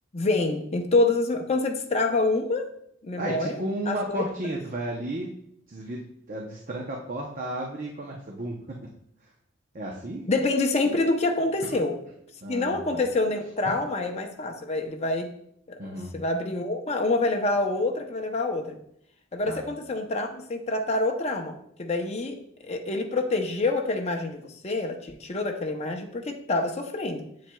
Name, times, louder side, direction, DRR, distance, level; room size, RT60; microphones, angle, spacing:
voice 1, 0.1-2.7 3.0-4.2 10.3-12.0 12.5-15.3 15.7-18.8 19.3-22.4 22.7-27.2, left 2 dB, 30° left, 3 dB, 0.6 m, -27 dB
voice 2, 3.1-5.3 5.7-8.9 9.7-10.3 11.6-11.8 12.4-13.0 15.8-16.2 19.5-19.7, right 1 dB, 45° right, 0 dB, 0.7 m, -33 dB
7.5 x 7.3 x 2.3 m, 0.72 s
head